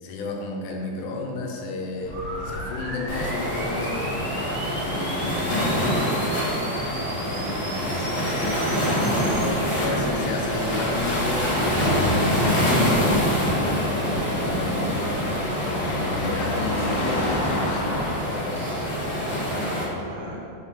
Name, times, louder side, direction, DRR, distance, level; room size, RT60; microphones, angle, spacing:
voice 1, 0.0-4.0 4.9-6.2 7.3-8.6 9.8-12.0 12.3-15.4 15.6-18.0 18.3-18.6, left 2 dB, 90° left, 0 dB, 3.0 m, -32 dB
sound 1, 2.0-18.2, left 1 dB, 70° left, 3.3 m, -34 dB
sound 2, 2.1-9.5, right 2 dB, 60° right, 2.5 m, -38 dB
Waves surf, 3.1-19.8, equal, 50° left, 1.9 m, -25 dB
voice 2, 9.0-10.4 18.5-18.9 19.2-20.4, right 1 dB, 75° right, -2 dB, 2.5 m, -37 dB
6.5 x 3.4 x 5.7 m, 2.9 s
omnidirectional pair, 4.7 m